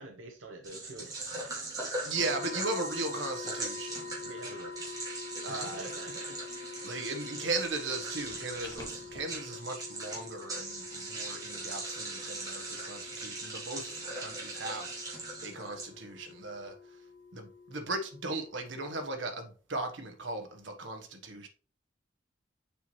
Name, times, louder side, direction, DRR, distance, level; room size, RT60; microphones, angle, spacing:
voice 1, 0.0-1.5 2.2-2.3 4.2-6.4, right 2 dB, 90° right, 0.8 m, -48 dB
sound 1, 0.6-16.3, right 2 dB, 20° right, 2.1 m, -40 dB
voice 2, 2.0-4.3 5.4-5.9 6.8-17.0 17.3-21.5, right 2 dB, 70° right, 1.1 m, -37 dB
sound 2, 2.2-19.0, left 4 dB, 65° left, 1.6 m, -46 dB
sound 3, 7.7-9.3, left 1 dB, 20° left, 1.2 m, -52 dB
6.8 x 4.5 x 3.1 m
head